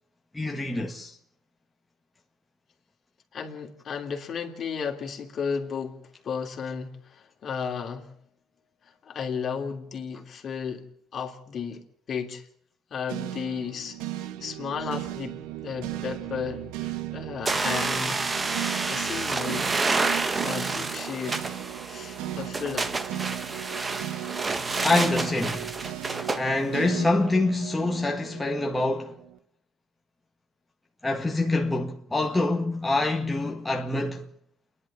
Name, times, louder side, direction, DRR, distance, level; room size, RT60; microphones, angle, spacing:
voice 1, 0.3-1.2 24.8-25.8 26.3-29.2 31.0-34.3, left 2 dB, 10° left, 1.7 m, -26 dB
voice 2, 3.3-8.1 8.8-12.5 12.9-14.0 14.4-18.2 18.8-20.1 20.4-21.5 21.9-23.0, left 6 dB, 50° left, 2.9 m, -34 dB
sound 1, 13.1-29.4, right 14 dB, 85° right, 1.1 m, -36 dB
sound 2, 17.5-26.4, right 3 dB, 25° right, 1.5 m, -29 dB
28.0 x 11.0 x 8.7 m
supercardioid pair, 85°, 0 cm